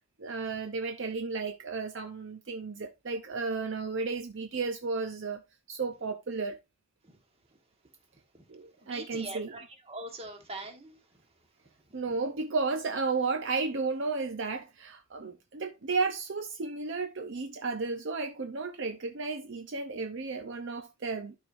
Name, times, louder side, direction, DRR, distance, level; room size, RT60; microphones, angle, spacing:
voice 1, 0.2-5.4 5.7-6.6 8.5-9.5 11.9-21.3, right 4 dB, 55° right, 0.6 m, -33 dB
voice 2, 8.8-11.0 11.9-12.0, right 2 dB, 25° right, 1.4 m, -43 dB
12.0 x 4.8 x 2.5 m
head